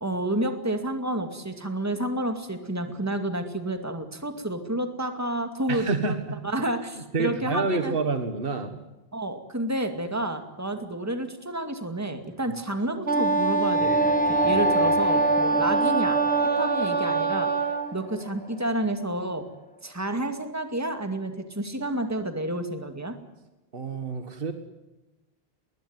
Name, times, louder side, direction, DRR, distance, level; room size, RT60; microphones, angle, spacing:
voice 1, 0.0-6.2 6.4-8.0 9.1-16.2 16.6-17.5 17.9-19.5 19.8-23.1, right 1 dB, 15° right, 7 dB, 2.3 m, -30 dB
voice 2, 5.7-6.4 7.1-8.8 23.7-24.5, right 3 dB, 60° right, 8 dB, 1.9 m, -28 dB
Wind instrument woodwind instrument, 13.1-17.9, right 3 dB, 80° right, 2.5 m, -23 dB
sound 1, 13.7-19.6, right 1 dB, 10° left, 1.6 m, -32 dB
21.0 x 20.0 x 9.6 m, 1.0 s
omnidirectional pair, 1.1 m